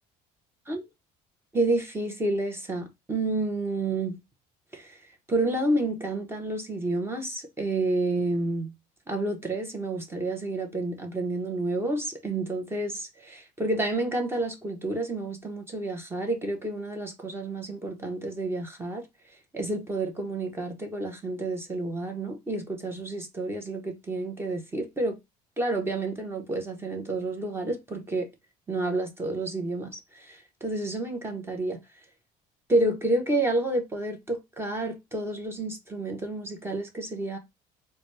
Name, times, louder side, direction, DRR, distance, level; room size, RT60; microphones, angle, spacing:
voice 1, 1.5-4.1 4.7-5.0 5.3-8.7 9.1-19.0 19.5-25.2 25.6-28.3 28.7-31.8 32.7-37.4, right 2 dB, 15° right, 0.9 m, -29 dB
3.9 x 2.2 x 3.2 m
cardioid pair, 130°, 16 cm